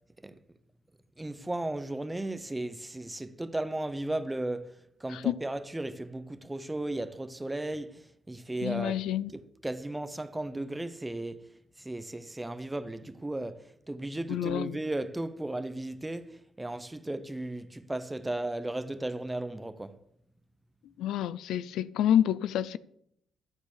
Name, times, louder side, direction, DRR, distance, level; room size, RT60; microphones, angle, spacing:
voice 1, 1.2-9.0 9.3-11.5 11.8-20.0, right 1 dB, 10° right, 0.9 m, -35 dB
voice 2, 8.6-9.3 14.3-14.8 21.0-22.8, left 10 dB, 85° left, 0.5 m, -28 dB
11.5 x 7.3 x 6.7 m
cardioid pair, 90°, 0 cm